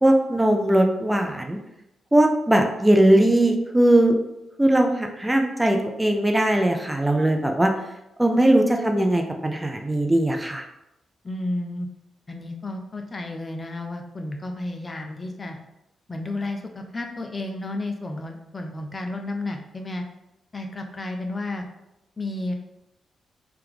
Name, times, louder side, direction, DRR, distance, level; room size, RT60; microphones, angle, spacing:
voice 1, 0.0-1.6 2.1-4.2 4.6-7.7 8.2-10.7, right 1 dB, 15° right, 4 dB, 0.5 m, -19 dB
voice 2, 11.2-11.9 12.3-15.6 16.1-20.0 20.5-21.6 22.2-22.5, left 2 dB, 35° left, 4 dB, 0.6 m, -32 dB
3.4 x 2.9 x 3.7 m, 0.89 s
supercardioid pair, 55°, 0 cm